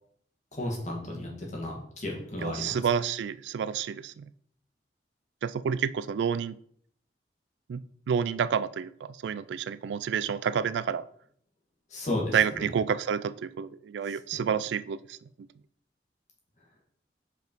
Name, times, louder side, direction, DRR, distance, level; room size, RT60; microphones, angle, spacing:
voice 1, 0.5-2.8 11.9-12.7 14.1-14.4, left 1 dB, 40° left, -1 dB, 1.9 m, -34 dB
voice 2, 2.4-4.3 5.4-6.5 7.7-11.1 12.3-15.2, right 7 dB, 80° right, 15 dB, 0.3 m, -29 dB
5.3 x 4.6 x 4.5 m, 0.63 s
head